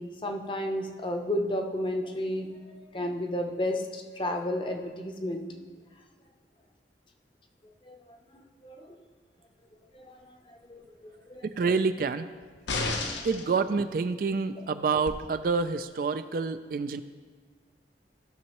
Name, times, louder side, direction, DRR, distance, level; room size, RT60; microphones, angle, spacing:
voice 1, 0.0-5.6 7.9-9.0 9.9-11.5 13.1-13.3, left 1 dB, 25° left, 4 dB, 0.7 m, -33 dB
voice 2, 11.5-12.3 13.2-17.0, right 4 dB, 50° right, 11 dB, 0.3 m, -28 dB
sound 1, 12.7-13.5 15.1-15.2, left 3 dB, 90° left, 0.9 m, -31 dB
15.5 x 6.3 x 3.0 m, 1.5 s
head